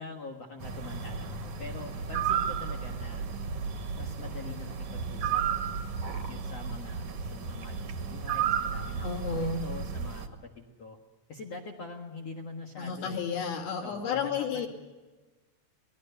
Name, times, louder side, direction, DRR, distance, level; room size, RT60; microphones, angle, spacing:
voice 1, 0.0-3.3 4.0-5.4 6.3-11.0 11.3-13.2 13.8-14.7, left 3 dB, 75° left, 2 dB, 1.4 m, -44 dB
sound 1, 0.6-10.3, right 7 dB, 55° right, 2.4 m, -33 dB
voice 2, 9.0-9.8 12.8-14.7, left 5 dB, 55° left, 2 dB, 4.1 m, -32 dB
25.5 x 19.5 x 6.8 m, 1.2 s
omnidirectional pair, 5.6 m